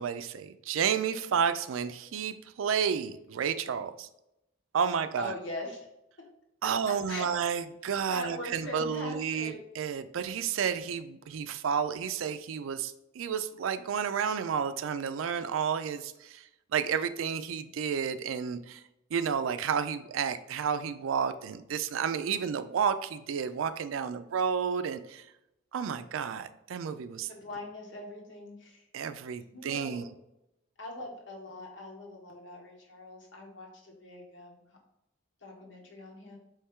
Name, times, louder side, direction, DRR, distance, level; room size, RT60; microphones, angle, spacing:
voice 1, 0.0-4.1 4.7-5.3 6.6-16.4 16.7-18.8 19.1-25.2 25.7-27.3 28.9-30.1, right 7 dB, 85° right, 11 dB, 0.4 m, -31 dB
voice 2, 4.9-5.9 6.6-7.3 8.1-9.6 27.3-28.9 29.4-30.0 30.8-34.8 35.4-36.4, left 2 dB, 65° left, 0 dB, 1.2 m, -42 dB
4.4 x 3.1 x 3.6 m, 0.85 s
head